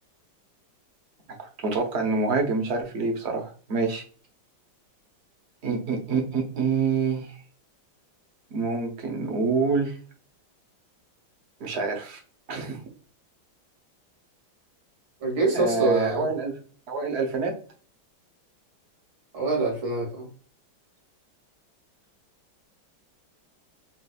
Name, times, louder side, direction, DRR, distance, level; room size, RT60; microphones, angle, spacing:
voice 1, 1.4-4.0 5.6-7.3 8.5-9.9 11.6-12.2 12.5-12.8 15.5-16.5 16.9-17.6, right 4 dB, 45° right, 4 dB, 1.0 m, -26 dB
voice 2, 15.2-16.3 19.3-20.3, right 3 dB, 90° right, -3 dB, 3.1 m, -25 dB
5.7 x 2.6 x 2.4 m, 0.39 s
omnidirectional pair, 2.2 m